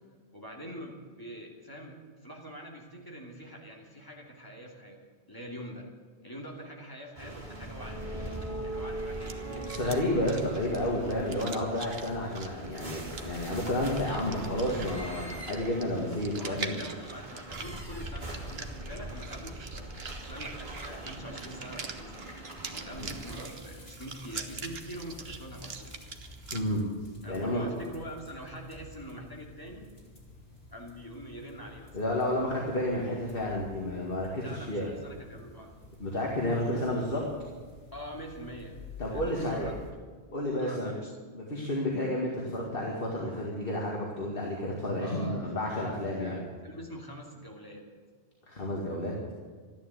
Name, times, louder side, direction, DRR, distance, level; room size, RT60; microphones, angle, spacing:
voice 1, 0.3-1.9 2.2-5.0 5.3-5.9 6.2-8.1 8.6-10.1 16.4-22.3 22.7-26.1 27.2-29.8 30.7-32.0 34.4-35.7 37.9-38.8 39.1-39.8 40.6-41.3 45.0-45.8 46.2-47.8, equal, 20° left, -1 dB, 2.8 m, -44 dB
sound 1, 7.1-23.5, right 1 dB, 45° right, 3.3 m, -41 dB
sound 2, 9.1-26.6, right 5 dB, 70° right, 1.4 m, -44 dB
voice 2, 9.7-16.8 23.0-23.1 26.5-26.8 27.3-27.7 31.9-34.9 36.0-37.2 39.0-39.7 40.3-40.9 41.3-46.4 48.5-49.1, left 1 dB, 55° left, -2 dB, 2.4 m, -31 dB
sound 3, 22.9-39.9, left 3 dB, 80° left, 3.9 m, -50 dB
13.5 x 12.0 x 8.3 m, 1.5 s
omnidirectional pair, 1.1 m